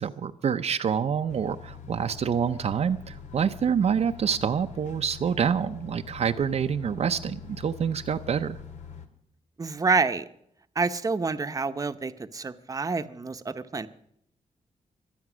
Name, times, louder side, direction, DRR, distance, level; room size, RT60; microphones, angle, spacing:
voice 1, 0.0-8.6, right 7 dB, 60° right, 7 dB, 0.6 m, -27 dB
sound 1, 1.3-9.1, left 6 dB, 75° left, 1.9 m, -44 dB
voice 2, 9.6-10.2 10.8-13.9, right 4 dB, 30° right, 9 dB, 0.9 m, -28 dB
23.5 x 8.7 x 6.2 m, 0.70 s
wide cardioid pair, 110°, 12 cm